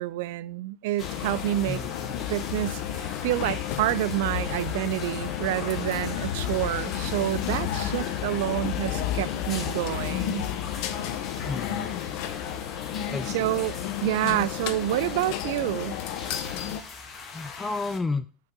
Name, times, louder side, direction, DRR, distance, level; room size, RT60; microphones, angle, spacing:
voice 1, 0.0-1.8 2.3-10.5 13.3-16.0, right 15 dB, 85° right, 0.3 m, -28 dB
sound 1, 1.0-16.8, left 10 dB, 75° left, 0.7 m, -32 dB
sound 2, 1.0-18.0, left 4 dB, 40° left, 1.5 m, -41 dB
voice 2, 1.7-2.2 11.4-12.0 13.1-13.5 17.3-18.3, left 3 dB, 15° left, 0.4 m, -32 dB
6.3 x 3.8 x 6.0 m
supercardioid pair, 120°, 0 cm